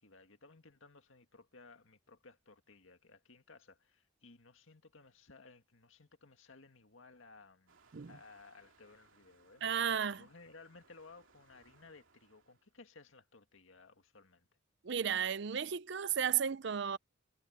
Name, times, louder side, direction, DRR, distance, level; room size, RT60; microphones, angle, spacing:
voice 1, 0.0-9.8 10.1-14.5, left 3 dB, 80° left, 2.0 m, -59 dB
Waves surf, 7.7-12.7, right 4 dB, 85° right, 2.5 m, -68 dB
voice 2, 9.6-10.2 14.8-17.0, right 8 dB, 60° right, 0.5 m, -34 dB
head